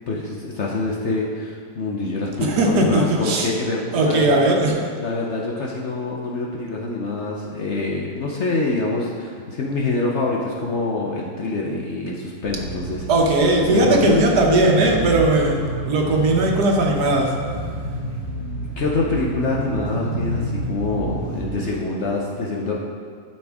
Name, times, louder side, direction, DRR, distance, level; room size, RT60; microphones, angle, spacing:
voice 1, 0.0-4.4 5.0-13.1 13.7-14.2 18.8-22.8, left 3 dB, 55° left, -3 dB, 0.9 m, -25 dB
voice 2, 2.4-3.5 3.9-4.7 13.1-15.5 15.8-17.3, right 2 dB, 65° right, 0 dB, 1.5 m, -18 dB
sound 1, 12.5-21.6, right 1 dB, 15° right, 0.7 m, -30 dB
11.5 x 5.3 x 3.6 m, 2.1 s
omnidirectional pair, 1.9 m